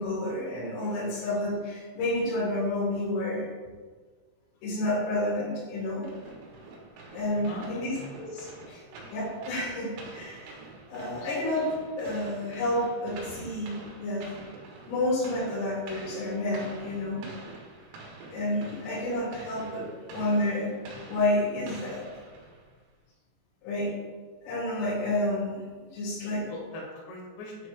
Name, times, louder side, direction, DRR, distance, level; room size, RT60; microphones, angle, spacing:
voice 1, 0.0-3.5 4.6-6.1 7.1-8.8 9.1-10.5 10.9-11.7 12.0-13.7 14.0-14.2 14.9-17.2 18.3-19.9 20.1-20.7 21.1-22.0 23.6-23.9 24.4-25.7 25.9-26.4, left 1 dB, 90° left, -5 dB, 4.7 m, -30 dB
sound 1, 6.0-22.8, right 3 dB, 85° right, 3.8 m, -47 dB
voice 2, 7.3-8.2 26.4-27.7, left 1 dB, 70° left, -2 dB, 3.0 m, -41 dB
10.5 x 5.0 x 2.3 m, 1.4 s
omnidirectional pair, 5.9 m